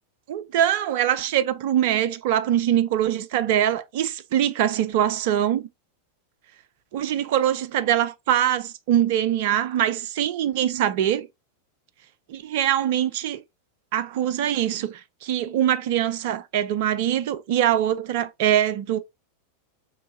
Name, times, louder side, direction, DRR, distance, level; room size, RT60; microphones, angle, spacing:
voice 1, 0.3-5.7 6.9-11.3 12.3-13.4 13.9-19.0, right 11 dB, 50° right, 0.5 m, -23 dB
4.6 x 3.5 x 2.5 m
figure-of-eight pair, 90°, 0 cm